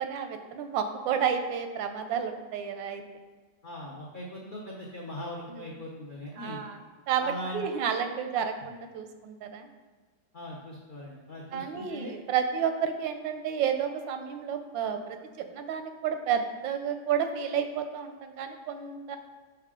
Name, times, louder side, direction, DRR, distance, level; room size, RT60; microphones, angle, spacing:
voice 1, 0.0-3.0 5.5-5.7 6.4-6.8 7.1-9.7 11.5-19.2, right 7 dB, 90° right, 7 dB, 1.3 m, -31 dB
voice 2, 3.6-6.6 7.2-7.6 10.3-12.2, equal, 80° left, -4 dB, 0.4 m, -40 dB
5.7 x 4.5 x 3.6 m, 1.3 s
omnidirectional pair, 2.0 m